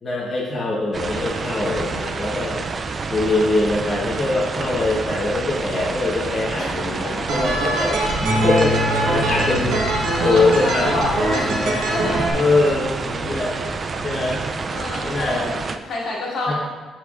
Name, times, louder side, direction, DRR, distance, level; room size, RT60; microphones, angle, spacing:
voice 1, 0.0-2.7 3.1-9.8 10.2-10.9 11.2-11.8 12.3-13.5 14.0-14.4 15.0-15.4 16.5-16.6, left 2 dB, 40° left, -6 dB, 1.3 m, -23 dB
sound 1, 0.9-15.8, right 4 dB, 40° right, 0.4 m, -28 dB
voice 2, 6.6-7.3 10.1-11.5 11.9-12.4 13.6-13.8 14.7-16.5, left 2 dB, 65° left, -5 dB, 1.8 m, -29 dB
sound 2, 7.3-12.3, right 2 dB, 75° right, 1.1 m, -23 dB
sound 3, 8.2-14.5, left 1 dB, 5° right, 0.9 m, -30 dB
11.5 x 4.6 x 2.5 m, 1.4 s
cardioid pair, 90°, 0 cm